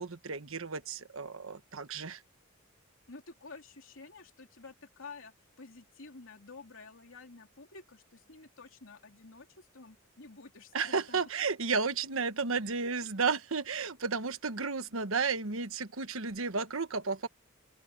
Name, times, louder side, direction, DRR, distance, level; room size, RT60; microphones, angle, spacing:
voice 1, 0.0-2.2 10.7-17.3, right 4 dB, 70° right, 1.3 m, -33 dB
voice 2, 3.1-11.2, left 3 dB, 65° left, 3.2 m, -51 dB
open air
head